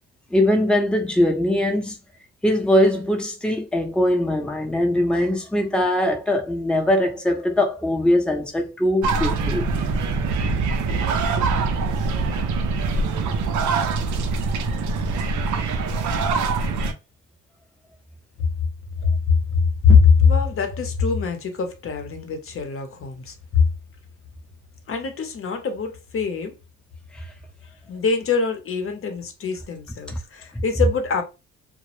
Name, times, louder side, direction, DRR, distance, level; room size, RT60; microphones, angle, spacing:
voice 1, 0.3-2.0 2.4-9.7 27.1-27.3 30.1-30.2, left 1 dB, 5° left, 0.6 m, -21 dB
sound 1, 9.0-16.9, right 4 dB, 75° right, 0.5 m, -23 dB
voice 2, 19.0-23.6 24.9-26.5 27.9-31.2, left 5 dB, 45° left, 0.7 m, -22 dB
2.1 x 2.0 x 3.0 m
cardioid pair, 90°, 30 cm